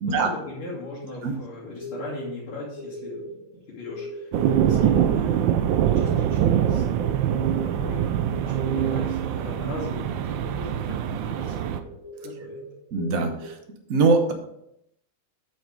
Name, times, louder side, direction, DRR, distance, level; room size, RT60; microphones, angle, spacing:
voice 1, 0.0-3.3 3.7-4.3 4.6-8.0 8.4-11.8 12.2-12.7, left 3 dB, 85° left, -7 dB, 3.0 m, -39 dB
sound 1, 1.8-2.3 2.7-10.2 10.5-10.7 11.0-11.1 11.4-13.5, left 1 dB, 90° right, 4.3 m, -40 dB
sound 2, 4.3-11.8, right 10 dB, 70° right, 1.2 m, -23 dB
voice 2, 12.9-13.5 13.9-14.3, right 4 dB, 50° right, 5 dB, 1.3 m, -22 dB
8.5 x 6.3 x 4.0 m, 0.77 s
omnidirectional pair, 2.3 m